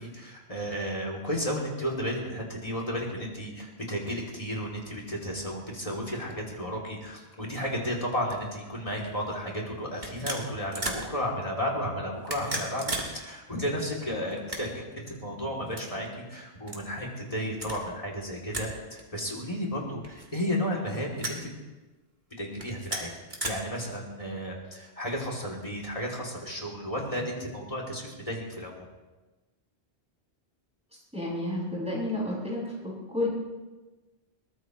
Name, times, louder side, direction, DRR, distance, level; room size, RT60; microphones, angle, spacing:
voice 1, 0.0-21.5 22.4-23.1 23.4-28.9, equal, 30° left, -1 dB, 3.2 m, -33 dB
sound 1, 8.9-9.1 10.0-11.1 12.1-13.1 13.4-13.5 14.3-14.9 15.7-15.8 16.7-16.8 17.5-17.8 18.5-18.7 19.0-19.1 20.0-20.6 21.2-21.4 22.5-23.5, right 1 dB, 45° right, 2.5 m, -35 dB
voice 2, 31.1-32.7 33.1-33.3, left 1 dB, 5° right, -6 dB, 6.8 m, -30 dB
22.0 x 19.0 x 3.2 m, 1.2 s
omnidirectional pair, 1.1 m